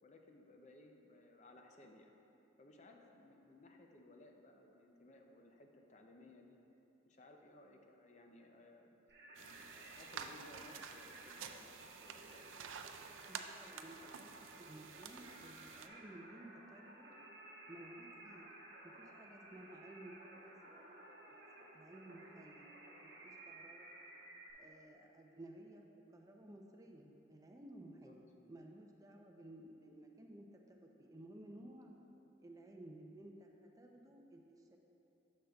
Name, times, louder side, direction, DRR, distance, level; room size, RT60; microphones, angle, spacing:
voice 1, 0.0-2.2 2.6-6.6 7.1-8.9 9.4-12.6 27.8-28.2, left 1 dB, 40° left, 3 dB, 0.5 m, -60 dB
Singing, 9.1-24.5, right 1 dB, 55° right, 1.0 m, -56 dB
sound 1, 9.4-15.9, right 7 dB, 85° right, 0.4 m, -51 dB
voice 2, 13.3-14.3 14.6-17.1 17.7-18.4 18.8-21.5 21.7-22.7 23.0-23.9 24.6-31.9 32.4-34.8, right 1 dB, 20° right, 1 dB, 0.5 m, -56 dB
10.0 x 6.5 x 2.3 m, 2.9 s
head